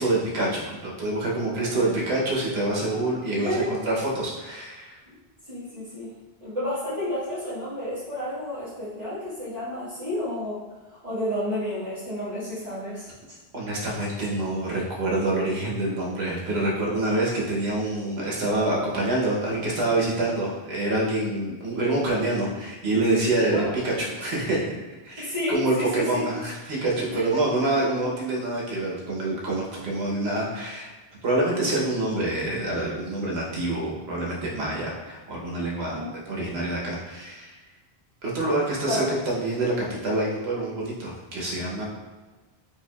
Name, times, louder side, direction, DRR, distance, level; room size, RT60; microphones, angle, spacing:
voice 1, 0.0-5.0 13.5-24.8 25.0-30.9 31.2-37.5 38.2-41.8, right 2 dB, 85° right, -3 dB, 1.1 m, -26 dB
voice 2, 1.6-1.9 3.3-3.7 5.5-6.1 6.4-10.7 11.0-13.1 23.5-23.7 25.2-26.2 27.1-27.4 35.9-36.1 38.9-39.1, left 1 dB, 40° right, -14 dB, 1.1 m, -31 dB
4.5 x 2.7 x 2.3 m, 1.2 s
omnidirectional pair, 1.0 m